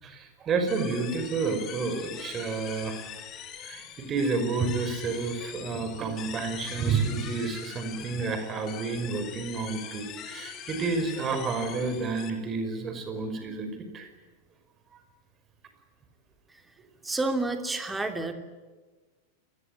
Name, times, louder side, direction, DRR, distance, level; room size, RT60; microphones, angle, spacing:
voice 1, 0.0-3.0 3.6-14.1 14.9-15.0, right 4 dB, 25° right, 8 dB, 5.4 m, -30 dB
sound 1, 0.7-12.3, left 9 dB, 30° left, 3.2 m, -42 dB
voice 2, 17.0-18.3, right 2 dB, 10° right, 7 dB, 2.9 m, -29 dB
28.5 x 20.5 x 8.9 m, 1.3 s
figure-of-eight pair, 90°, 0 cm